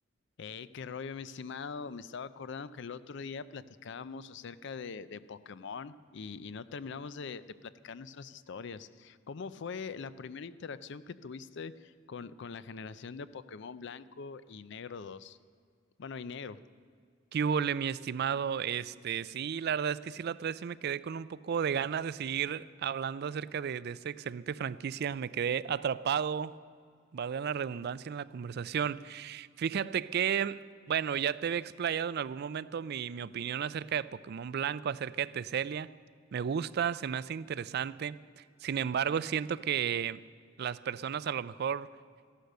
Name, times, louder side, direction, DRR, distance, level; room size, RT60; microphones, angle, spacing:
voice 1, 0.4-15.4 16.0-16.6, left 5 dB, 65° left, 15 dB, 0.5 m, -42 dB
voice 2, 17.3-26.5 27.1-30.6 30.9-35.9 36.3-40.3 40.6-41.9, right 8 dB, 55° right, 18 dB, 0.4 m, -33 dB
14.5 x 11.5 x 6.5 m, 2.1 s
head